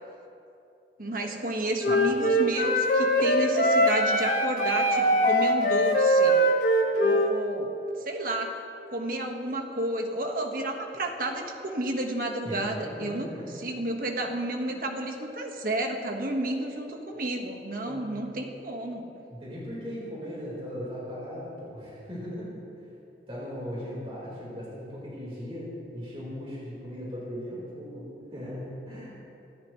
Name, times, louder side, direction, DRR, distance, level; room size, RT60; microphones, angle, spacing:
voice 1, 1.0-6.4 7.0-7.8 8.0-8.5 8.9-19.1, right 1 dB, 50° right, 2 dB, 1.6 m, -31 dB
Wind instrument woodwind instrument, 1.8-7.3, equal, 45° left, 1.5 m, -22 dB
voice 2, 12.4-13.5 14.1-14.3 14.6-14.7 17.8-18.2 19.3-22.6 23.3-29.2, equal, 35° right, -7 dB, 4.4 m, -38 dB
26.5 x 13.5 x 3.2 m, 2.8 s
head